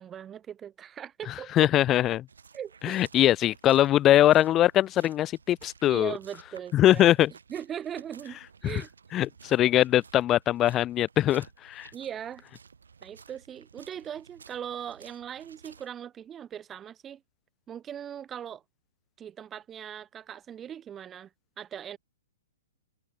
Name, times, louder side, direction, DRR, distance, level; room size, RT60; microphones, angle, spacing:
voice 1, 0.0-1.7 2.5-3.0 5.9-7.0 7.5-8.9 11.9-12.4 13.0-17.2 17.7-18.6 19.2-21.3 21.6-22.0, right 9 dB, 20° right, 2.6 m, -39 dB
voice 2, 1.3-2.3 2.8-6.1 6.7-7.3 8.6-8.8 9.1-11.9, left 13 dB, 25° left, 1.2 m, -22 dB
sound 1, 2.3-15.9, right 5 dB, 85° right, 6.0 m, -54 dB
hypercardioid pair, 125°, 0 cm